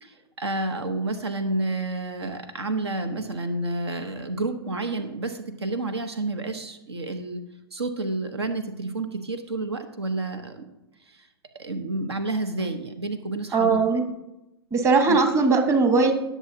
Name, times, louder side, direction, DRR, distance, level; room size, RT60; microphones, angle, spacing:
voice 1, 0.0-7.4 7.7-10.7 11.1-11.3 11.5-13.8 15.1-15.2, right 2 dB, 75° right, 9 dB, 1.0 m, -30 dB
voice 2, 13.5-14.0 14.7-16.1, right 4 dB, 20° right, 5 dB, 1.4 m, -19 dB
17.5 x 7.3 x 2.8 m, 0.93 s
figure-of-eight pair, 110°, 14 cm